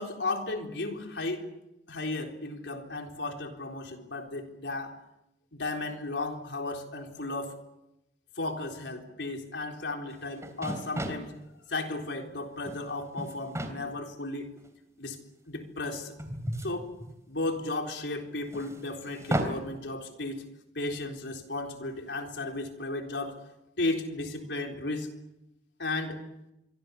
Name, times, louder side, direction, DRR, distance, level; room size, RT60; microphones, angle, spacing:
voice 1, 0.0-1.5 1.9-5.0 5.5-7.5 8.4-11.4 11.7-14.5 15.0-15.2 15.5-16.2 16.6-16.9 17.3-20.5 20.7-23.4 23.8-25.1 25.8-26.2, left 2 dB, 75° left, 4 dB, 3.9 m, -34 dB
sound 1, 10.1-10.2 10.4-11.3 12.4-12.8 13.2-13.8 14.6-14.7 16.2-17.5 18.5-19.6, right 1 dB, 15° right, 3.3 m, -34 dB
26.5 x 24.0 x 7.1 m, 0.91 s
head